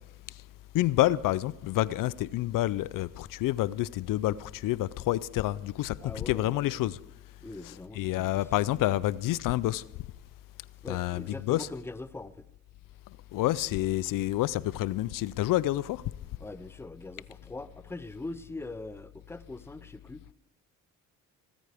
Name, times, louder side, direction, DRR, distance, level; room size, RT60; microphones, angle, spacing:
voice 1, 0.7-7.0 7.6-9.8 10.9-11.7 13.3-16.0, left 15 dB, 70° left, 0.5 m, -28 dB
voice 2, 6.0-6.6 7.4-8.4 10.8-12.5 16.4-20.3, left 2 dB, 5° left, 0.6 m, -42 dB
18.0 x 14.0 x 3.5 m
cardioid pair, 85°, 33 cm